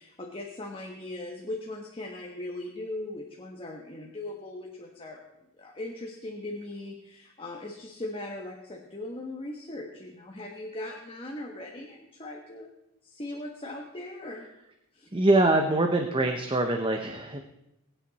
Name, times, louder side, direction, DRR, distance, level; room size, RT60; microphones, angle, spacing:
voice 1, 0.0-5.2 5.6-12.7 13.0-14.4 14.9-15.1, left 1 dB, 25° left, 0 dB, 1.4 m, -39 dB
voice 2, 15.1-17.4, right 2 dB, 25° right, 5 dB, 0.8 m, -24 dB
21.5 x 9.1 x 4.2 m, 0.88 s
head